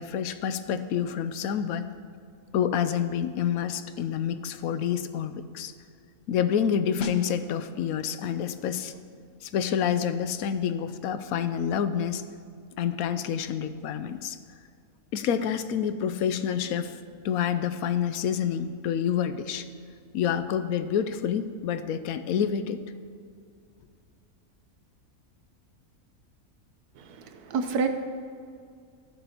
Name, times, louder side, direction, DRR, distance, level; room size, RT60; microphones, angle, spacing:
voice 1, 0.0-1.9 2.5-5.7 6.3-8.9 9.4-12.2 12.8-14.4 15.1-17.0 17.2-19.7 20.1-22.8, left 8 dB, 75° left, 11 dB, 1.0 m, -28 dB
sound 1, 7.0-17.5 17.8-18.0, left 2 dB, 55° left, 0.8 m, -45 dB
voice 2, 27.0-27.9, right 5 dB, 85° right, 7 dB, 1.3 m, -29 dB
14.0 x 12.0 x 2.9 m, 2.3 s
omnidirectional pair, 1.6 m